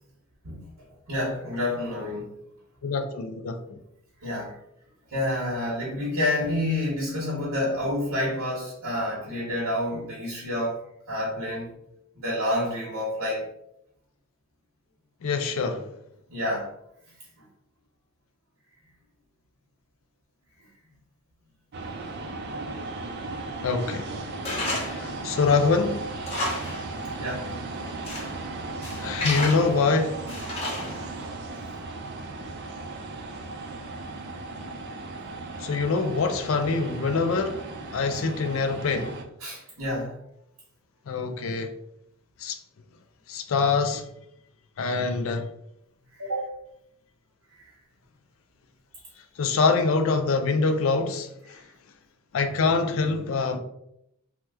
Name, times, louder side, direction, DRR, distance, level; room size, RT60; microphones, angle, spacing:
voice 1, 1.1-2.3 4.2-4.5 5.1-10.8 11.1-11.7 12.2-13.5 16.3-16.7 27.2-27.5 39.4-40.1 46.1-46.5, left 1 dB, 85° right, 1.0 m, -28 dB
voice 2, 2.8-3.6 15.2-15.8 23.6-24.1 24.8-26.0 29.0-30.2 35.6-37.6 37.9-39.1 41.1-41.7 42.4-42.6 43.3-44.0 44.8-45.5 49.4-51.6 52.3-53.6, left 4 dB, 65° left, 0.4 m, -24 dB
sound 1, 21.7-39.2, right 3 dB, 50° right, 0.4 m, -36 dB
Tools, 24.4-25.1 25.4-25.5 26.0-26.9 27.1-27.2 27.8-28.4 28.8-29.8 30.3-31.2, left 1 dB, 30° left, 0.8 m, -31 dB
2.9 x 2.1 x 3.4 m
head